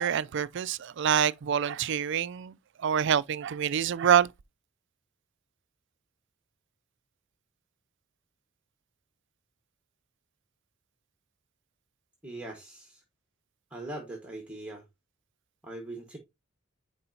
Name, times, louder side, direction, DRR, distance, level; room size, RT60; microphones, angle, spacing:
voice 1, 0.0-4.3, right 8 dB, 60° right, 0.4 m, -26 dB
voice 2, 12.2-13.0 13.7-14.8 15.6-16.2, right 2 dB, 5° right, 1.5 m, -41 dB
9.7 x 4.9 x 2.8 m
head